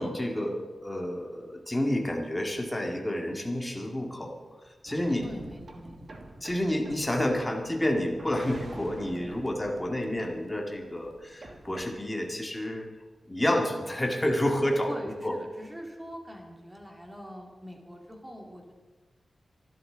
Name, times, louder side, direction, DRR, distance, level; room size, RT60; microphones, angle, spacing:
voice 1, 0.0-4.3 4.6-5.3 6.4-12.9 13.3-15.3, left 1 dB, 10° left, 1 dB, 1.9 m, -29 dB
sound 1, 4.9-11.9, right 2 dB, 45° right, 1.7 m, -46 dB
voice 2, 5.2-6.2 14.9-18.7, equal, 10° right, 1 dB, 2.3 m, -43 dB
23.5 x 12.0 x 3.9 m, 1.4 s
wide cardioid pair, 175°, 0 cm